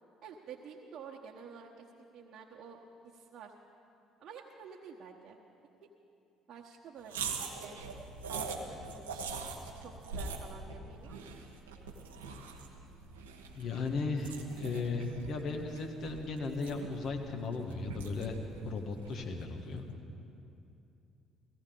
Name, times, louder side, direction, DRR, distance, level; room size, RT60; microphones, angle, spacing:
voice 1, 0.2-1.9 2.1-3.5 4.2-5.4 5.8-5.9 6.5-7.8 8.3-9.4 9.8-11.3, right 6 dB, 50° right, -3 dB, 1.1 m, -50 dB
sound 1, 7.1-19.5, right 4 dB, 85° right, 1.0 m, -43 dB
voice 2, 13.5-18.4 18.6-19.9, left 3 dB, 55° left, 3 dB, 1.4 m, -36 dB
16.5 x 15.5 x 3.8 m, 2.8 s
hypercardioid pair, 55°, 0 cm